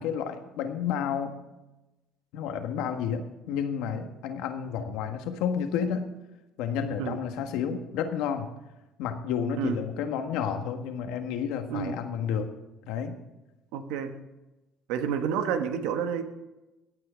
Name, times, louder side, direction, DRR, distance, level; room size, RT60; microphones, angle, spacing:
voice 1, 0.0-1.4 2.3-6.1 6.6-8.5 9.0-12.5 12.9-13.1, left 7 dB, 80° left, 6 dB, 1.5 m, -31 dB
voice 2, 13.7-14.2 14.9-16.2, right 7 dB, 85° right, 8 dB, 1.3 m, -29 dB
17.0 x 8.7 x 5.1 m, 1.0 s
cardioid pair, 120°, 0 cm